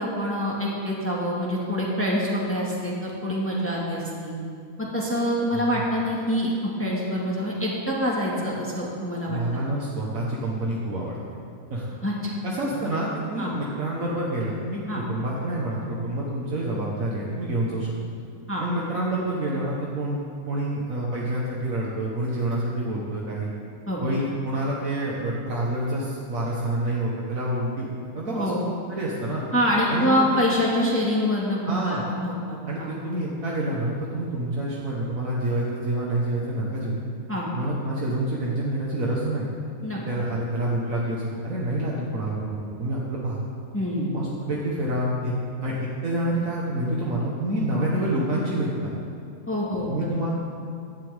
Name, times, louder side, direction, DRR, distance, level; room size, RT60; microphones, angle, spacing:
voice 1, 0.0-4.3 4.8-9.4 12.0-12.3 12.7-12.8 13.4-13.5 14.9-15.0 18.5-18.6 23.9-24.0 28.4-28.6 29.5-32.9 37.3-37.5 39.8-40.0 43.7-44.1 47.7-47.9 49.5-50.1, equal, 10° left, -5 dB, 1.9 m, -26 dB
voice 2, 9.3-11.2 11.7-11.9 12.4-14.8 15.1-17.9 18.6-20.2 20.5-23.5 24.0-27.9 28.1-28.6 28.9-29.4 29.9-30.4 31.7-32.0 32.7-36.9 37.5-39.5 40.1-43.4 44.1-45.3 45.6-45.8 46.0-48.9 49.9-50.3, right 1 dB, 70° right, -5 dB, 1.8 m, -27 dB
17.0 x 11.5 x 3.6 m, 2.4 s
omnidirectional pair, 1.5 m